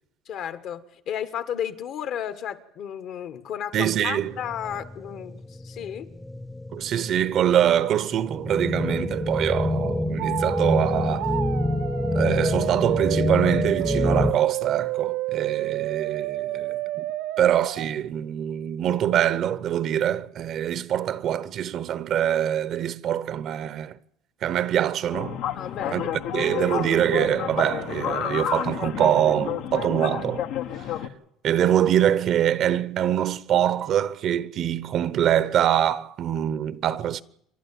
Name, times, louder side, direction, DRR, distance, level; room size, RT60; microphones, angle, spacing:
voice 1, 0.3-6.1 25.6-26.1, left 9 dB, 55° left, 1.6 m, -33 dB
voice 2, 3.7-4.4 6.7-11.3 12.1-17.1 17.4-23.9 24.4-25.4 25.9-26.0 26.3-30.4 31.4-37.2, right 10 dB, 45° right, 0.9 m, -24 dB
sound 1, 4.3-14.3, left 2 dB, 5° left, 0.8 m, -27 dB
sound 2, 10.2-17.9, right 15 dB, 80° right, 1.3 m, -30 dB
sound 3, 25.1-31.1, left 10 dB, 75° left, 1.5 m, -30 dB
28.0 x 12.0 x 8.7 m
cardioid pair, 140°, 0 cm